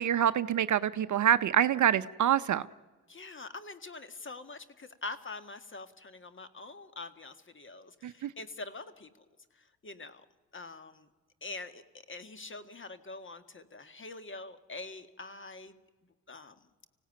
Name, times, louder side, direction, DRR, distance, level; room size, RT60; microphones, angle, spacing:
voice 1, 0.0-2.7 8.0-8.3, right 10 dB, 45° right, 14 dB, 0.7 m, -26 dB
voice 2, 3.1-9.3 9.6-10.2 10.5-11.1 11.4-11.8 12.1-15.7 16.3-16.7, left 3 dB, 30° left, 11 dB, 1.9 m, -44 dB
25.0 x 17.0 x 9.5 m, 1.4 s
hypercardioid pair, 55°, 40 cm